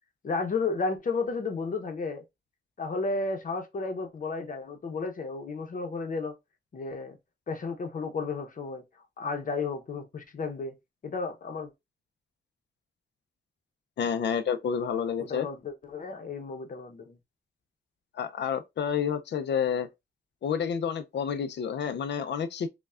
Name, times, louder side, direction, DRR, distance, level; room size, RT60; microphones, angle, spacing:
voice 1, 0.2-2.2 2.8-6.3 6.7-7.2 7.5-8.8 9.2-10.7 11.0-11.7 15.2-17.2, left 4 dB, 50° left, 0.8 m, -33 dB
voice 2, 14.0-15.5 18.1-19.9 20.4-22.7, left 7 dB, 80° left, 0.5 m, -29 dB
5.5 x 2.3 x 2.4 m
wide cardioid pair, 160°, 18 cm